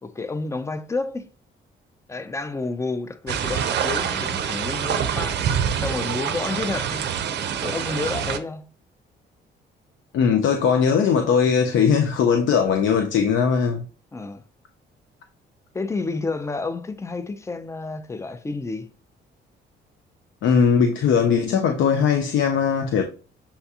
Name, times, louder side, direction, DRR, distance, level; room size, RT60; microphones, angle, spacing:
voice 1, 0.0-1.3 2.1-5.4 5.7-7.0 7.6-8.6 14.1-14.4 15.7-18.9, left 3 dB, 15° left, 0.4 m, -30 dB
sound 1, 3.3-8.4, right 8 dB, 60° right, 0.5 m, -26 dB
voice 2, 10.1-13.8 20.4-23.0, left 6 dB, 75° left, 0.5 m, -19 dB
6.9 x 2.3 x 2.7 m
cardioid pair, 90°, 20 cm